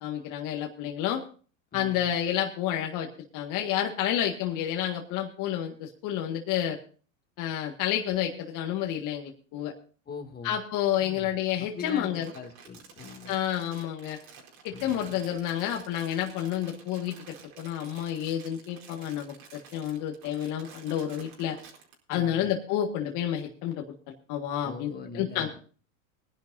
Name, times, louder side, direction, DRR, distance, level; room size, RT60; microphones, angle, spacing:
voice 1, 0.0-1.2 1.7-3.1 3.3-6.8 7.4-9.7 10.4-12.3 13.3-14.2 14.6-17.1 17.6-21.6 22.1-25.6, left 10 dB, 45° left, 2 dB, 1.9 m, -30 dB
voice 2, 1.7-2.1 10.1-10.6 11.0-11.3 11.6-13.3 14.7-15.0 22.1-22.5 24.6-25.6, left 5 dB, 20° left, 4 dB, 2.4 m, -42 dB
Crumpling crinkling, 11.9-21.9, right 6 dB, 50° right, 4.6 m, -51 dB
22.0 x 10.5 x 2.7 m, 0.40 s
supercardioid pair, 120°, 41 cm